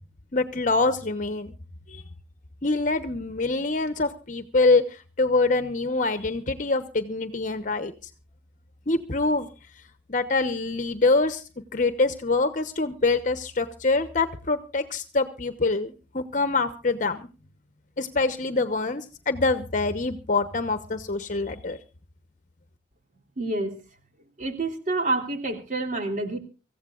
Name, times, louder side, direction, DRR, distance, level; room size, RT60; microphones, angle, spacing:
voice 1, 0.3-1.5 1.9-2.0 2.6-7.9 8.9-9.5 10.1-11.4 11.7-17.3 18.0-21.8, left 3 dB, 45° left, 10 dB, 1.0 m, -25 dB
voice 2, 23.4-23.7 24.4-26.4, right 2 dB, 45° right, 4 dB, 3.3 m, -28 dB
25.0 x 15.5 x 2.4 m, 0.34 s
head